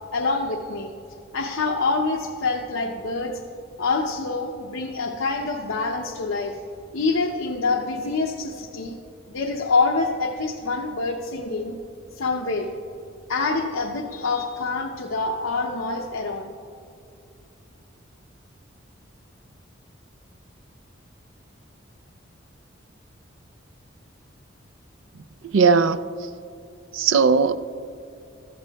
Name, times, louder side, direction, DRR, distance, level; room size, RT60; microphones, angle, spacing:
voice 1, 0.1-0.9 1.3-3.4 3.8-6.6 6.9-8.9 9.3-11.7 12.1-12.7 13.3-16.5, left 3 dB, 85° left, 1 dB, 0.7 m, -26 dB
voice 2, 25.4-26.3 26.9-27.6, right 5 dB, 80° right, 13 dB, 0.4 m, -19 dB
16.0 x 13.0 x 2.3 m, 2.6 s
head